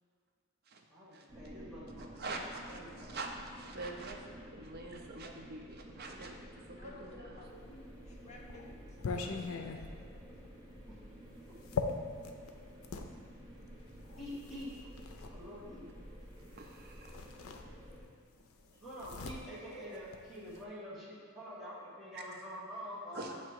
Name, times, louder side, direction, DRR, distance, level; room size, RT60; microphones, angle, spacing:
voice 1, 0.9-2.4 2.7-3.2 11.5-11.6 14.2-14.7 15.3-15.9 18.8-23.3, equal, ahead, -11 dB, 1.2 m, -46 dB
sound 1, 1.3-18.0, equal, 20° right, 0.8 m, -52 dB
voice 2, 2.2-3.3 3.6-6.4 6.7-7.4 16.6-17.2 22.1-22.2 23.1-23.3, right 3 dB, 50° right, 2 dB, 0.6 m, -44 dB
voice 3, 6.7-10.0, left 1 dB, 35° left, -2 dB, 0.8 m, -55 dB
sound 2, 7.8-13.1 14.0-15.3 16.6-16.7 17.0-18.1 18.4-20.6, left 5 dB, 90° left, 0.5 m, -41 dB
7.4 x 3.0 x 4.6 m, 2.3 s
head